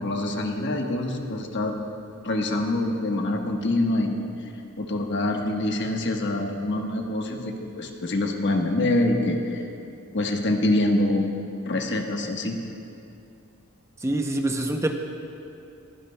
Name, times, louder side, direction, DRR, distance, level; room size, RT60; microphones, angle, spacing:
voice 1, 0.0-1.7 2.2-4.1 4.8-9.6 10.1-11.2 11.7-12.6, left 1 dB, 60° left, 2 dB, 1.2 m, -25 dB
voice 2, 14.0-14.9, right 1 dB, 15° right, 4 dB, 0.6 m, -25 dB
20.5 x 15.5 x 2.2 m, 2.6 s
head